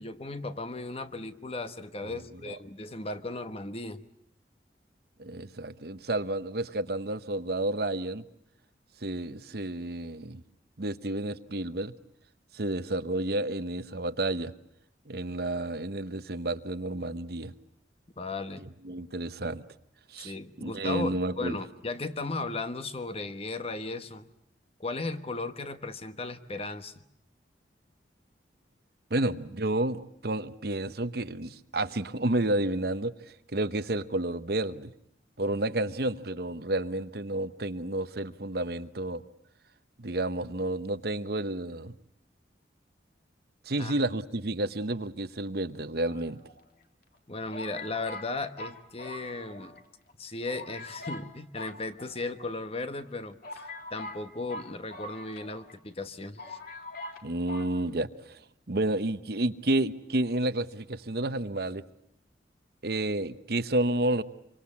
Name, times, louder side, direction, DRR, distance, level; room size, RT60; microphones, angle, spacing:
voice 1, 0.0-4.0 18.2-18.6 20.2-24.3 24.8-26.9 43.8-44.0 47.3-49.8 50.2-53.6 53.9-56.6, left 3 dB, 35° left, 1.2 m, -36 dB
voice 2, 5.2-8.2 9.0-10.4 10.8-11.9 12.5-14.5 15.1-17.5 18.8-19.6 20.1-21.6 29.1-34.9 35.4-39.2 40.0-41.9 43.6-46.4 57.2-58.4 58.7-61.8 62.8-64.2, right 1 dB, 60° right, 1.0 m, -30 dB
sound 1, 46.1-46.8 47.5-49.8 50.1-50.2 50.5-51.3 51.5-52.5 53.1-53.2 53.4-55.7 56.0-56.1 56.4-57.2 57.5-57.7, left 2 dB, 55° left, 3.4 m, -42 dB
26.0 x 25.0 x 8.6 m
head